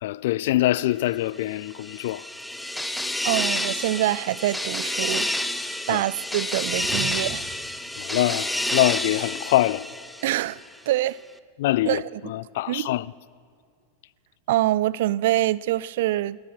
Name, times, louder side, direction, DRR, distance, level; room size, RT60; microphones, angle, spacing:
voice 1, 0.0-2.2 5.9-6.0 8.0-9.9 11.6-13.1, left 15 dB, 65° left, 0.3 m, -24 dB
sound 1, 1.5-10.6, left 1 dB, 5° left, 0.6 m, -29 dB
voice 2, 3.2-5.3 5.9-7.5 10.2-10.6 10.9-11.2 11.9-12.2 12.7-12.9 14.5-16.4, right 15 dB, 65° right, 0.3 m, -25 dB
sound 2, 6.5-7.8, right 6 dB, 40° right, 1.6 m, -39 dB
14.0 x 12.5 x 5.9 m
hypercardioid pair, 100°, 0 cm